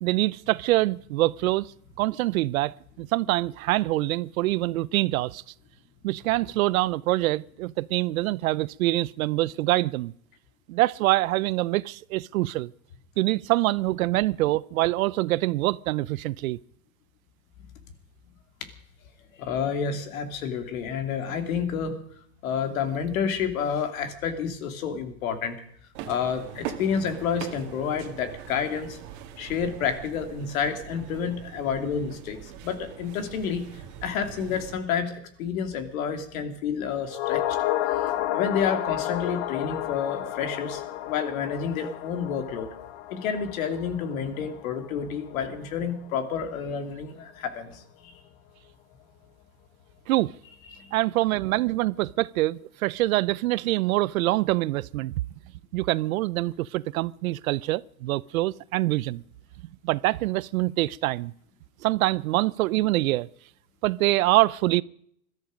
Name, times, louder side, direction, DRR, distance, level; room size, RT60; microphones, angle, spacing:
voice 1, 0.0-1.7 2.0-5.4 6.0-10.1 10.7-12.7 13.2-16.6 50.1-50.3 50.9-55.1 55.7-59.2 59.8-61.3 61.8-63.3 63.8-64.8, right 18 dB, 65° right, 0.6 m, -25 dB
voice 2, 19.4-22.0 22.4-25.6 26.1-29.0 29.4-37.4 38.3-42.7 43.1-48.1 50.7-50.9, left 7 dB, 65° left, 2.9 m, -29 dB
sound 1, 25.9-34.8, right 10 dB, 40° right, 2.0 m, -42 dB
sound 2, 37.1-45.6 45.9-46.0, left 13 dB, 40° left, 0.9 m, -31 dB
20.5 x 13.5 x 5.2 m
supercardioid pair, 155°, 45 cm